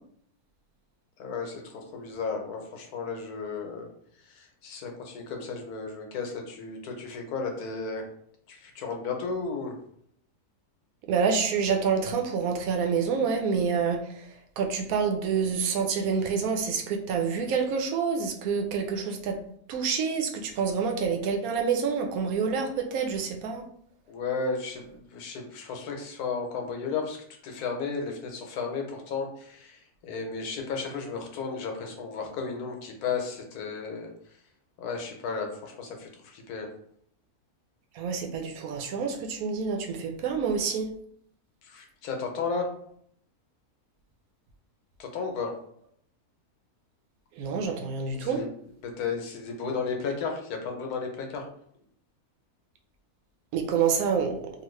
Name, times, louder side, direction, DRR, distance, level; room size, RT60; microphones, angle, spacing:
voice 1, 1.2-3.9 4.3-8.1 8.5-9.8 24.1-27.2 27.4-34.1 34.8-36.7 41.6-42.7 45.0-45.5 48.1-48.5 48.8-51.5, left 5 dB, 85° left, 3 dB, 1.2 m, -34 dB
voice 2, 11.1-14.3 14.6-19.4 19.7-23.6 37.9-40.9 47.4-48.4 53.5-54.5, right 6 dB, 75° right, 4 dB, 1.0 m, -27 dB
2.9 x 2.4 x 3.1 m, 0.65 s
omnidirectional pair, 1.6 m